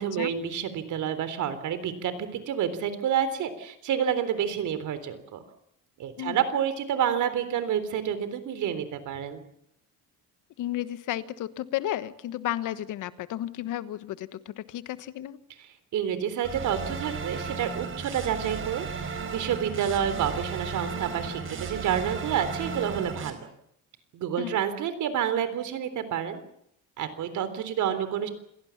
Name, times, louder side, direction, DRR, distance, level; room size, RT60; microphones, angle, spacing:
voice 1, 0.0-5.4 6.0-9.4 15.9-23.4 24.1-26.4 27.0-28.3, right 9 dB, 65° right, 12 dB, 3.8 m, -29 dB
voice 2, 10.6-15.4 24.4-24.5, left 13 dB, 70° left, 14 dB, 1.3 m, -33 dB
sound 1, 16.4-23.3, right 5 dB, 40° right, 4.5 m, -35 dB
27.5 x 17.5 x 7.3 m, 0.75 s
cardioid pair, 130°, 32 cm